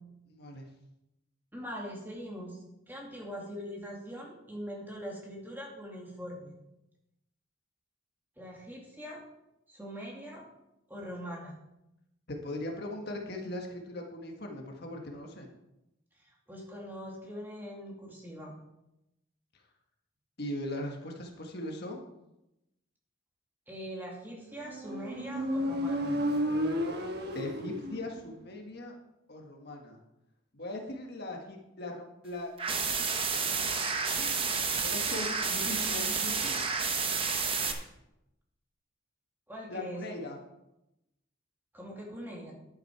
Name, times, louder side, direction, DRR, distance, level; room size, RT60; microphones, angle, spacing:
voice 1, 0.3-0.7 12.3-15.5 20.4-22.0 27.3-28.9 29.3-30.0 30.5-33.1 34.8-36.6 39.7-40.4, left 1 dB, 50° left, 2 dB, 1.4 m, -39 dB
voice 2, 1.5-6.5 8.4-9.2 9.7-10.4 10.9-11.6 16.2-18.5 23.7-26.2 34.2-34.5 39.5-40.0 41.7-42.5, equal, 10° right, -2 dB, 2.2 m, -42 dB
Motorcycle, 24.6-28.3, equal, 50° right, 1.3 m, -32 dB
sound 1, 32.6-37.7, right 5 dB, 25° right, 1.0 m, -30 dB
11.0 x 8.8 x 4.6 m, 0.89 s
head